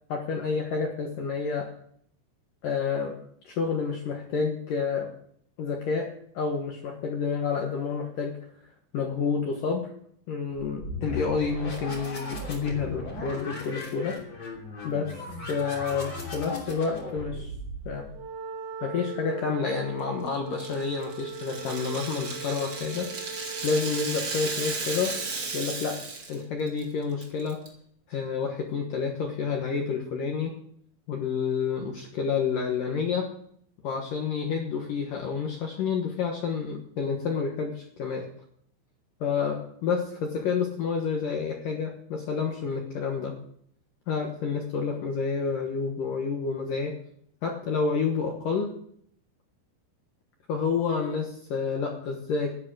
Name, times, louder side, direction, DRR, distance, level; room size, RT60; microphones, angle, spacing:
voice 1, 0.1-1.7 2.6-3.2 3.4-5.1 5.6-8.4 8.9-9.9 10.3-14.2 14.8-15.1 15.5-17.5 17.9-18.1 18.8-25.1 25.5-26.0 26.3-27.6 28.1-30.6 31.1-33.3 33.8-38.3 39.2-43.4 44.1-47.0 47.4-48.7 50.5-52.6, left 5 dB, 65° left, 2 dB, 2.2 m, -29 dB
sound 1, 10.8-18.2, left 2 dB, 30° left, 3.0 m, -37 dB
Wind instrument woodwind instrument, 18.1-24.4, right 5 dB, 70° right, 3.6 m, -39 dB
Rattle (instrument), 20.6-26.4 26.7-26.8 27.2-27.7, right 3 dB, 40° right, 1.8 m, -35 dB
13.0 x 11.0 x 6.2 m, 0.65 s
omnidirectional pair, 5.6 m